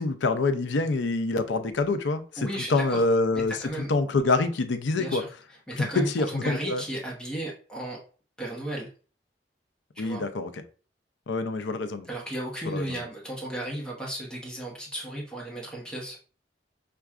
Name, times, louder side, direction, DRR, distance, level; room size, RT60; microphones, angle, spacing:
voice 1, 0.0-3.6 3.9-5.2 5.8-6.8 10.0-10.5 11.3-12.1 12.7-13.0, left 3 dB, 85° left, 9 dB, 0.5 m, -26 dB
voice 2, 2.4-3.1 3.3-3.9 4.9-5.3 5.7-8.0 8.4-8.9 9.9-10.2 12.1-16.2, right 1 dB, 5° left, -2 dB, 0.9 m, -34 dB
5.9 x 2.3 x 2.4 m, 0.38 s
head